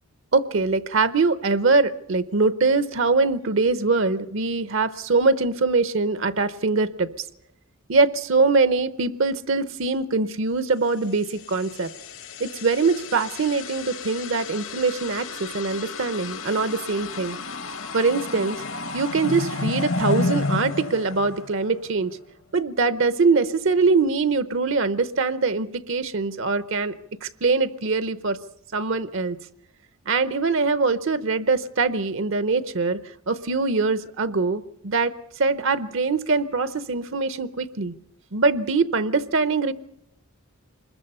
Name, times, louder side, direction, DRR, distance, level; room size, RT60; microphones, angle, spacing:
voice 1, 0.3-7.1 7.9-11.9 12.4-17.4 17.9-18.6 18.9-22.2 22.5-26.9 27.2-28.4 28.7-29.4 30.1-33.0 33.3-37.9 38.3-39.7, right 4 dB, 60° right, 13 dB, 0.7 m, -23 dB
sound 1, 11.3-21.9, left 3 dB, 60° left, 1.1 m, -31 dB
25.5 x 21.0 x 5.5 m, 0.75 s
head